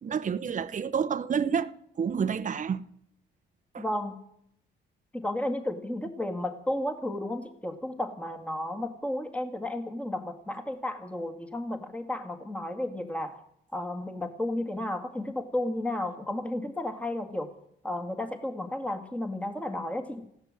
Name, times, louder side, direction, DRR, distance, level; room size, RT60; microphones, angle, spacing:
voice 1, 0.0-1.7 2.0-2.8 3.7-3.8, right 7 dB, 40° right, 0.9 m, -29 dB
voice 2, 3.8-4.2 5.1-13.4 13.7-17.5 17.8-20.2, left 1 dB, 5° left, 2.1 m, -33 dB
16.0 x 11.5 x 7.6 m
cardioid pair, 90°, 20 cm